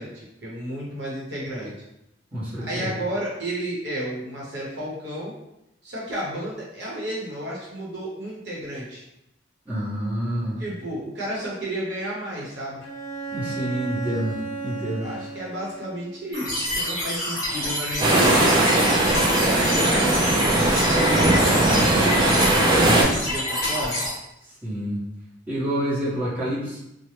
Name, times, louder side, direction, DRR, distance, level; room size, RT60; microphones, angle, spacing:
voice 1, 0.0-1.7 2.6-5.3 5.8-9.0 10.6-12.8 15.0-18.6 19.3-24.1, right 1 dB, 75° right, -5 dB, 0.9 m, -32 dB
voice 2, 2.3-2.9 9.6-10.6 13.3-15.1 19.3-19.6 24.4-25.0 25.5-26.8, equal, 10° right, -12 dB, 1.2 m, -28 dB
Bowed string instrument, 12.8-16.3, right 4 dB, 75° left, 0.5 m, -35 dB
sound 1, 16.3-24.1, left 1 dB, 20° left, 1.4 m, -27 dB
sound 2, 18.0-23.0, right 1 dB, 25° right, 0.4 m, -19 dB
2.8 x 2.1 x 3.2 m, 0.84 s
head